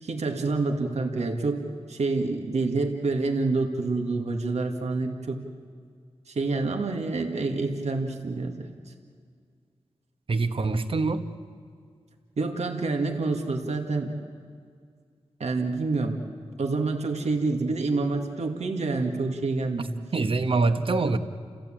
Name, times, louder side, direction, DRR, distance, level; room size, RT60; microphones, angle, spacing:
voice 1, 0.0-5.4 6.3-8.7 12.4-14.1 15.4-16.2 16.6-19.9, right 3 dB, 75° right, 3 dB, 2.1 m, -27 dB
voice 2, 10.3-11.2 20.1-21.2, right 3 dB, 55° right, 8 dB, 1.3 m, -24 dB
30.0 x 15.5 x 8.8 m, 2.1 s
wide cardioid pair, 120°, 11 cm